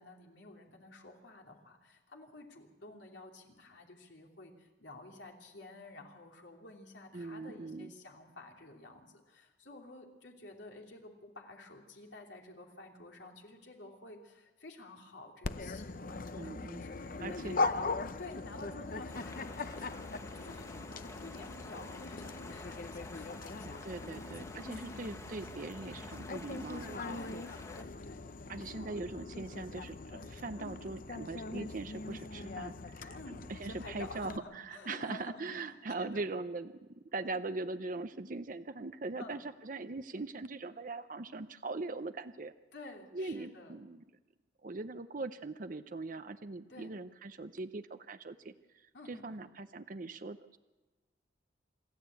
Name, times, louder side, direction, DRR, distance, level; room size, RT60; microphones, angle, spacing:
voice 1, 0.0-17.9 18.2-19.9 20.3-25.1 27.1-29.0 30.6-30.8 33.1-36.2 39.2-39.4 42.7-43.8 46.7-47.0 48.9-49.4, left 2 dB, 70° left, 1 dB, 3.0 m, -51 dB
voice 2, 7.1-7.9 16.3-16.8 17.2-17.6 23.8-27.4 28.5-33.2 33.5-42.5 43.1-44.0 44.6-50.6, right 3 dB, 45° right, 10 dB, 0.6 m, -41 dB
Dog, 15.4-34.4, left 3 dB, 45° left, 0.6 m, -41 dB
sound 1, 19.1-27.8, left 2 dB, 15° left, 0.9 m, -51 dB
27.0 x 12.0 x 8.2 m, 1.2 s
head